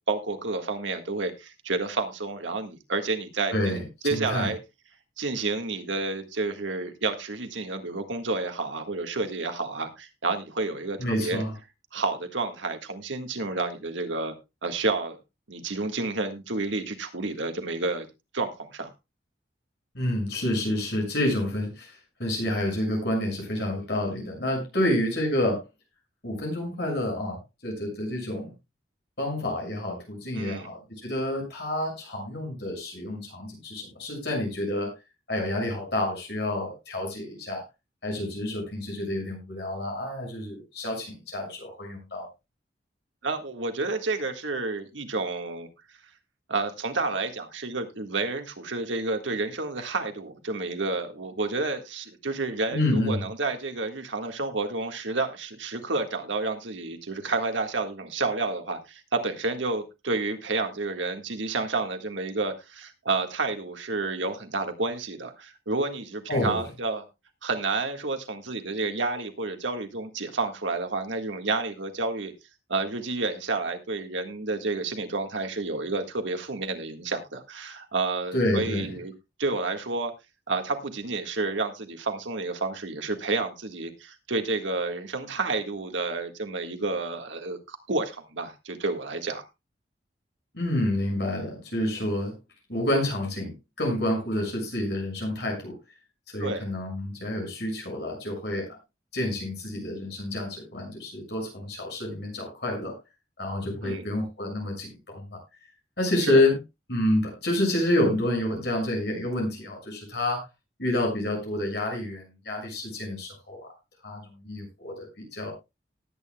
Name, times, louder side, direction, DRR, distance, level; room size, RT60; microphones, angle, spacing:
voice 1, 0.1-3.8 4.0-4.6 5.2-11.4 11.9-14.3 14.6-15.2 15.5-18.1 18.3-18.9 30.4-30.7 43.2-45.7 46.5-67.0 67.4-72.3 72.7-79.1 79.4-80.1 80.5-89.4 96.4-96.7 103.8-104.1 106.3-106.4, right 3 dB, 85° right, 6 dB, 1.7 m, -30 dB
voice 2, 3.5-3.8 4.1-4.5 11.0-11.5 19.9-25.6 26.2-27.4 27.6-28.5 29.2-34.9 35.3-37.6 38.0-42.3 52.7-53.2 66.3-66.6 78.3-78.9 90.5-92.3 92.7-95.7 96.3-98.7 99.1-102.9 103.4-105.4 106.0-106.5 106.9-110.4 110.8-113.7 114.0-115.5, left 1 dB, 65° left, 0 dB, 6.8 m, -28 dB
19.0 x 8.9 x 2.3 m, 0.24 s
head